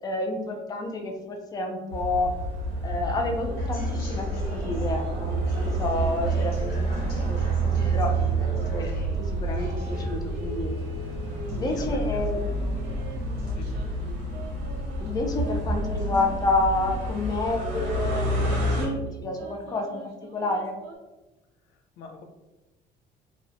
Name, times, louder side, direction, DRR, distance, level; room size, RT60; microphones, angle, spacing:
voice 1, 0.0-2.3 2.8-8.2 8.4-8.9 9.2-10.7 11.5-12.6 15.0-19.0 19.2-20.0 20.3-20.7, left 2 dB, 25° left, 2 dB, 0.4 m, -29 dB
sound 1, 1.9-18.9, right 2 dB, 85° right, 0.9 m, -28 dB
sound 2, 2.8-13.5, left 1 dB, 65° left, 0.8 m, -45 dB
sound 3, 3.3-4.2 4.6-6.5 7.0-11.9 12.5-17.2 17.8-21.0, right 3 dB, 70° right, 0.5 m, -44 dB
voice 2, 11.7-12.8 13.5-13.8 21.7-22.2, left 3 dB, 85° left, 5 dB, 0.4 m, -44 dB
2.5 x 2.1 x 2.6 m, 1.1 s
cardioid pair, 110°, 17 cm